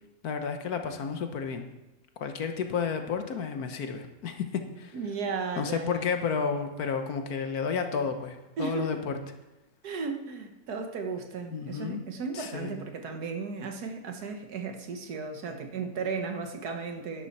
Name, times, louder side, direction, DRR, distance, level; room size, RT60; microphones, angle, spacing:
voice 1, 0.2-1.7 2.2-5.0 5.6-9.2 11.5-12.0 12.3-12.7, left 6 dB, 65° left, 6 dB, 1.4 m, -31 dB
voice 2, 4.9-6.1 8.6-9.0 9.8-17.3, right 5 dB, 65° right, 5 dB, 1.6 m, -35 dB
11.0 x 11.0 x 4.2 m, 0.99 s
omnidirectional pair, 1.8 m